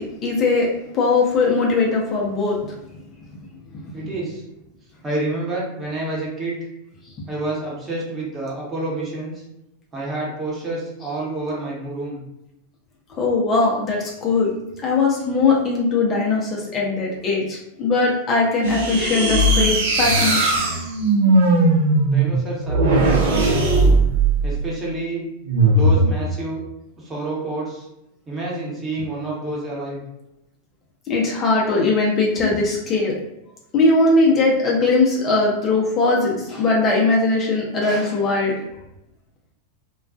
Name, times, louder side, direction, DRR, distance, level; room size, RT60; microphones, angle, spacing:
voice 1, 0.0-2.6 13.1-14.6 14.8-20.6 31.1-33.2 33.7-38.5, left 3 dB, 30° left, -3 dB, 0.6 m, -20 dB
voice 2, 3.9-4.4 5.0-6.7 7.3-9.4 9.9-12.2 22.0-23.9 24.4-25.3 25.7-26.6 27.0-27.9 28.3-30.0, right 2 dB, 20° right, -5 dB, 1.0 m, -28 dB
sound 1, 18.6-24.6 25.5-26.1, right 2 dB, 65° right, 0.6 m, -18 dB
2.3 x 2.3 x 2.4 m, 0.85 s
hypercardioid pair, 95°, 0 cm